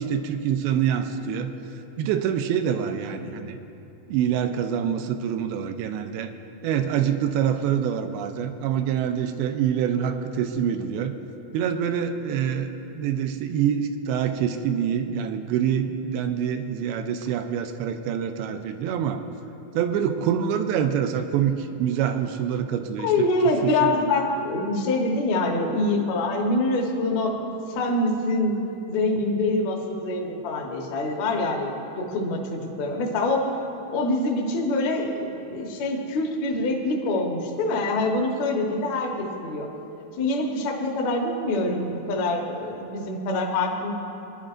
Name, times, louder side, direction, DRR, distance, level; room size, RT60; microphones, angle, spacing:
voice 1, 0.0-1.5 2.0-3.6 4.1-6.3 6.6-11.1 11.5-19.2 19.8-23.3 23.6-23.9, right 8 dB, 90° right, 8 dB, 2.5 m, -26 dB
voice 2, 23.0-27.4 27.7-28.6 28.9-31.7 32.0-33.5 33.9-39.7 40.2-43.9, left 2 dB, 60° left, 0 dB, 2.0 m, -25 dB
24.0 x 10.5 x 2.5 m, 2.8 s
omnidirectional pair, 4.4 m